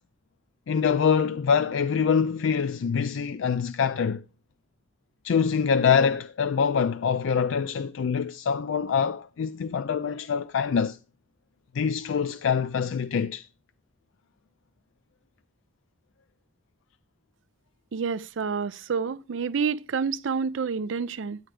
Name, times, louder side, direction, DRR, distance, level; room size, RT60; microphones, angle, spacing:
voice 1, 0.7-4.2 5.2-11.0 11.7-13.4, left 6 dB, 85° left, 0.4 m, -25 dB
voice 2, 17.9-21.4, right 5 dB, 80° right, 0.5 m, -28 dB
9.9 x 8.9 x 3.3 m
head